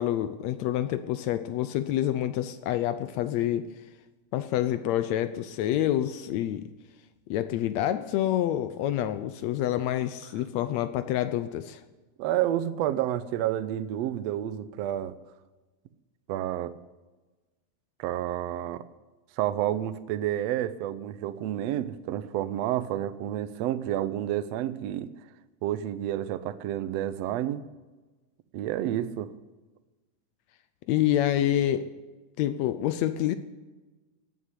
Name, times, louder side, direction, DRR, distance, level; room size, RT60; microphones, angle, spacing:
voice 1, 0.0-3.7 4.3-6.7 7.3-11.8 30.9-31.9 32.4-33.3, left 12 dB, 85° left, 11 dB, 1.5 m, -27 dB
voice 2, 12.2-15.2 16.3-16.7 18.0-18.8 19.4-25.1 25.6-27.6 28.5-29.3, right 12 dB, 85° right, 13 dB, 1.4 m, -30 dB
17.5 x 7.5 x 9.7 m, 1.2 s
omnidirectional pair, 3.9 m